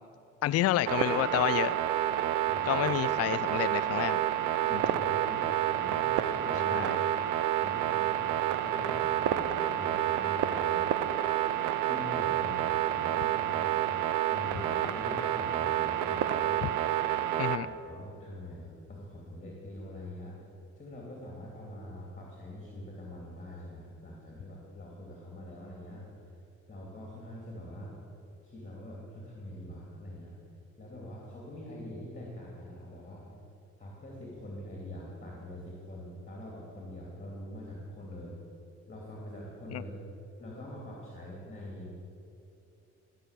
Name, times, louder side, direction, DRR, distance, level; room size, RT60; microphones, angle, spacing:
voice 1, 0.4-1.7 2.7-4.2 4.7-4.8 6.7-7.0 17.4-17.7 39.7-39.8, left 13 dB, 55° left, 16 dB, 0.4 m, -29 dB
sound 1, 0.9-17.6, right 12 dB, 85° right, 0.7 m, -29 dB
voice 2, 2.5-2.8 4.1-5.5 5.7-7.2 7.5-10.9 11.8-13.8 14.3-16.7 17.5-20.4 20.8-26.4 26.7-28.0 28.4-30.3 30.8-33.3 33.8-38.4 38.9-39.9 40.4-41.9, left 1 dB, 25° left, -3 dB, 2.8 m, -44 dB
14.0 x 6.3 x 8.2 m, 2.8 s
cardioid pair, 90°, 30 cm